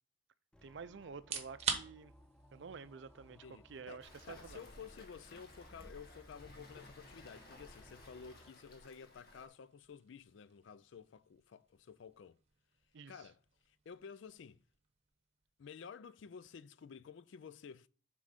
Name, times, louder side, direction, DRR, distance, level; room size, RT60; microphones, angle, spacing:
sound 1, 0.5-8.5, left 1 dB, 5° left, 0.4 m, -62 dB
voice 1, 0.6-2.1 2.5-4.6 12.9-13.3, right 5 dB, 60° right, 0.5 m, -50 dB
sound 2, 1.1-16.0, right 6 dB, 35° right, 1.0 m, -49 dB
voice 2, 3.3-12.4 13.1-13.4 13.7-14.6 15.6-17.9, left 6 dB, 65° left, 0.4 m, -53 dB
Waves surf, 4.0-9.5, left 1 dB, 50° left, 1.3 m, -57 dB
7.3 x 3.7 x 5.1 m
head